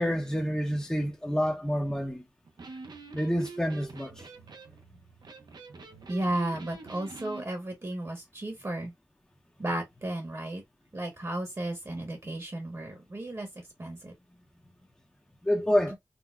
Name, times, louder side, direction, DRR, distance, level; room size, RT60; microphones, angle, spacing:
voice 1, 0.0-2.2 3.1-4.3 15.4-16.0, equal, 10° left, 0.6 m, -28 dB
Electric guitar, 2.4-7.5, right 3 dB, 85° right, 0.5 m, -46 dB
voice 2, 6.1-8.9 9.6-10.6 10.9-13.5 13.8-14.1, right 1 dB, 45° right, 1.1 m, -34 dB
3.9 x 2.0 x 2.3 m
wide cardioid pair, 75°, 7 cm